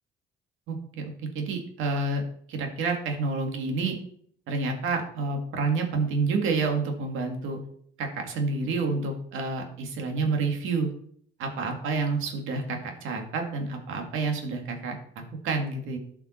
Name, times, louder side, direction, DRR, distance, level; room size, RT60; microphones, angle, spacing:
voice 1, 0.7-2.2 2.5-4.0 4.5-7.6 8.0-10.9 11.4-15.0 15.4-16.0, right 3 dB, 90° right, 3 dB, 2.0 m, -29 dB
12.0 x 5.9 x 4.3 m, 0.63 s
cardioid pair, 90°, 20 cm